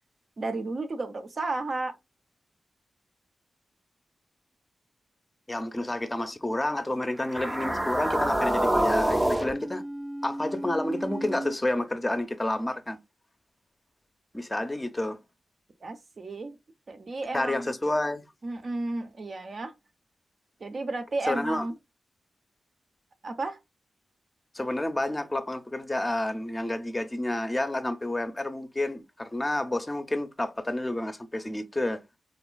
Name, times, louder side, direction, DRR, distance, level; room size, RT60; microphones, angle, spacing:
voice 1, 0.4-1.9 15.8-16.6 16.9-17.7 18.4-19.7 20.6-21.7 23.2-23.6, right 2 dB, 55° right, 0.6 m, -33 dB
voice 2, 5.5-9.8 10.2-13.0 14.3-15.2 17.3-18.2 21.3-21.7 24.5-32.0, left 1 dB, 20° left, 0.6 m, -30 dB
sound 1, 7.2-11.6, right 1 dB, 20° right, 0.6 m, -28 dB
3.5 x 2.3 x 2.2 m
cardioid pair, 45°, 0 cm